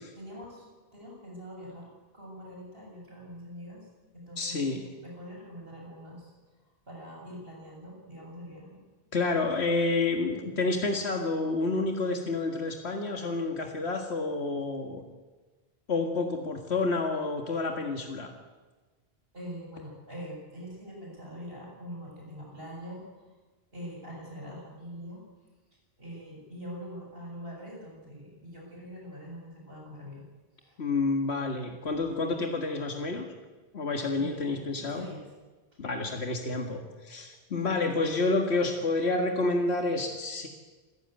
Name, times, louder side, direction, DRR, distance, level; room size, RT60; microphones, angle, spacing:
voice 1, 0.2-3.9 4.1-4.6 5.0-6.3 6.9-8.8 19.3-23.3 23.7-25.2 26.0-30.3 30.6-30.8 31.8-32.0 34.1-35.3 37.6-37.9, equal, 65° right, -1 dB, 7.8 m, -44 dB
voice 2, 4.4-4.9 9.1-15.0 15.9-18.3 30.8-33.3 33.7-35.1 35.8-40.5, left 3 dB, 85° left, 3 dB, 2.1 m, -29 dB
27.5 x 15.0 x 9.2 m, 1.3 s
omnidirectional pair, 1.1 m